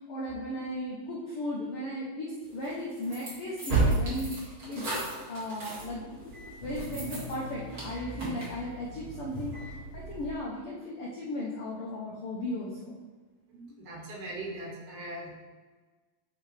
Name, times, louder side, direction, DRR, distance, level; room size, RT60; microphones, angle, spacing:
voice 1, 0.1-4.9 5.3-6.1 6.6-13.0, left 1 dB, 75° left, -4 dB, 1.3 m, -36 dB
sound 1, 2.6-10.3, right 2 dB, 35° right, 1.8 m, -33 dB
voice 2, 13.5-15.3, right 1 dB, 85° right, -4 dB, 3.0 m, -40 dB
8.9 x 3.7 x 3.2 m, 1.3 s
omnidirectional pair, 3.4 m